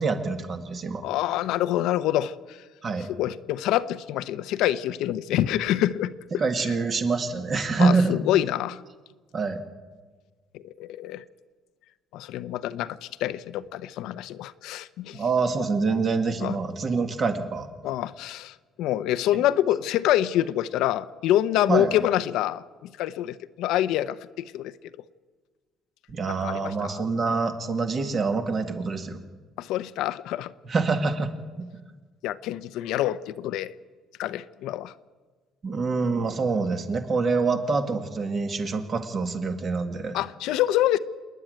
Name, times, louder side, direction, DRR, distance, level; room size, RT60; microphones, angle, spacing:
voice 1, 0.0-1.1 2.8-3.1 6.4-8.2 9.3-9.6 15.1-17.7 21.7-21.9 26.1-29.2 30.7-31.7 35.6-40.2, right 4 dB, 35° right, 7 dB, 1.9 m, -26 dB
voice 2, 1.0-2.6 3.1-6.1 7.8-8.8 10.5-11.2 12.1-15.2 16.4-16.6 17.8-22.6 23.0-24.2 24.5-24.7 26.4-27.0 29.6-30.5 32.2-33.7 34.2-34.9 40.1-41.0, left 13 dB, 80° left, 13 dB, 0.7 m, -26 dB
27.5 x 10.5 x 9.3 m, 1.4 s
cardioid pair, 135°, 0 cm